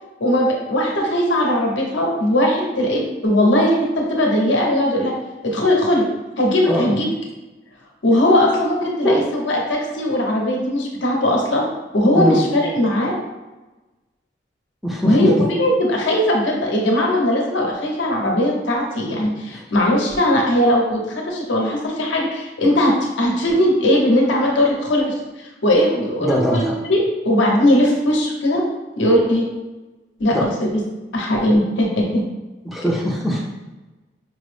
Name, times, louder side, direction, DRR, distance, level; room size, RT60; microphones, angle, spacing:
voice 1, 0.2-5.1 5.4-6.0 6.4-7.1 8.0-11.6 11.9-13.1 15.0-21.0 21.3-26.6 26.9-28.6 29.0-29.4 30.2-30.8 31.1-32.2, left 1 dB, 80° left, -1 dB, 0.8 m, -19 dB
voice 2, 14.8-15.3 19.5-19.6 26.2-26.7 30.3-30.4 32.7-33.4, equal, ahead, -3 dB, 0.4 m, -20 dB
5.1 x 2.0 x 3.3 m, 1.1 s
head